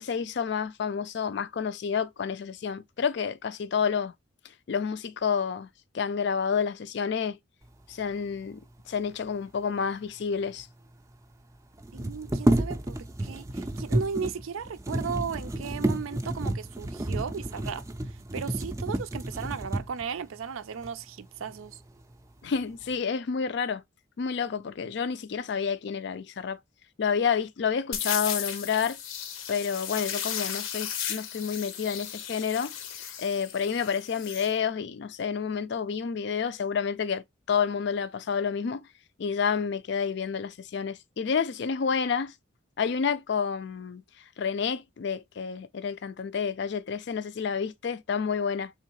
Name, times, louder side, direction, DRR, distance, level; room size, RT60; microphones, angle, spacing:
voice 1, 0.0-4.1 4.7-5.7 5.9-7.4 7.9-8.6 8.9-10.7 22.4-23.8 24.2-26.6 27.0-29.0 29.5-38.8 39.2-42.3 42.8-44.0 44.4-48.7, left 6 dB, 55° left, 0.4 m, -29 dB
sound 1, 10.3-10.4 10.6-10.7 11.8-20.1 20.8-20.9 21.4-22.0 22.4-22.9, right 1 dB, 15° right, 0.4 m, -30 dB
voice 2, 11.9-17.8 18.3-21.8, right 6 dB, 85° right, 0.4 m, -36 dB
sound 2, 27.9-34.5, left 9 dB, 90° left, 0.7 m, -35 dB
3.7 x 3.5 x 2.9 m
head